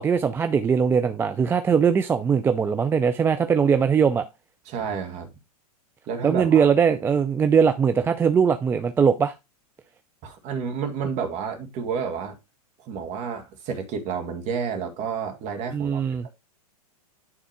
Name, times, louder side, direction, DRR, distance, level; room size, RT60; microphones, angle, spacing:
voice 1, 0.0-4.2 6.2-9.3 15.7-16.3, right 6 dB, 10° right, 0.4 m, -21 dB
voice 2, 4.7-5.3 6.1-6.7 10.2-12.4 12.8-16.3, right 6 dB, 35° right, 2.0 m, -30 dB
9.2 x 3.6 x 4.8 m
figure-of-eight pair, 105°, 20 cm